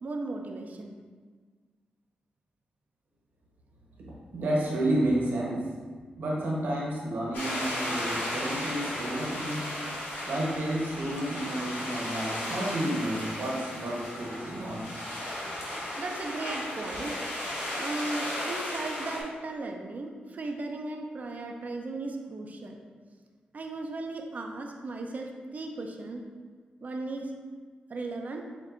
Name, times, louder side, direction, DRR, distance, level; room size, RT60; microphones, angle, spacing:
voice 1, 0.0-1.0 16.0-17.1 17.8-22.8 23.5-26.2 26.8-27.3 27.9-28.4, right 2 dB, 55° right, 3 dB, 0.6 m, -36 dB
voice 2, 4.3-5.6 6.2-9.9 10.3-14.9, right 1 dB, 80° right, -4 dB, 1.2 m, -31 dB
sound 1, 7.3-19.2, left 1 dB, 90° left, 1.1 m, -35 dB
7.3 x 2.6 x 2.6 m, 1.5 s
cardioid pair, 60°, 3 cm